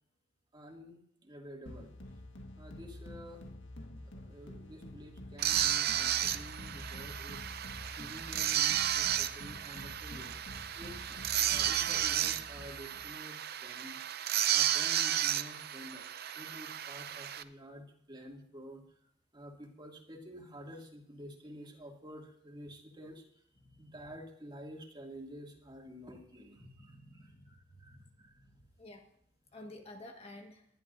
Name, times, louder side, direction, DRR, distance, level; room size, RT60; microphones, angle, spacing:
voice 1, 0.5-1.9 2.6-3.4 4.0-10.3 10.7-14.0 14.5-16.1 16.3-23.4 23.7-28.4, equal, 25° right, 0 dB, 2.5 m, -50 dB
sound 1, 1.7-13.2, left 1 dB, 80° left, 1.7 m, -48 dB
sound 2, 5.4-17.4, right 11 dB, 55° right, 0.7 m, -33 dB
voice 2, 23.6-23.9 26.6-28.0 28.3-29.1 29.5-30.7, left 1 dB, 35° left, 3 dB, 1.6 m, -52 dB
21.5 x 11.5 x 2.7 m, 0.66 s
head